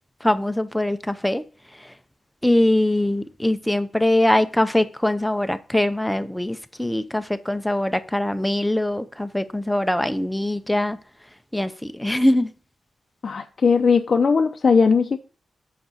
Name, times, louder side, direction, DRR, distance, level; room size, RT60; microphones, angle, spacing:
voice 1, 0.2-1.4 2.4-11.0 11.5-12.5, left 1 dB, 5° left, 0.6 m, -22 dB
voice 2, 13.2-15.2, left 5 dB, 45° left, 0.6 m, -18 dB
7.7 x 5.9 x 5.5 m
wide cardioid pair, 130°, 0 cm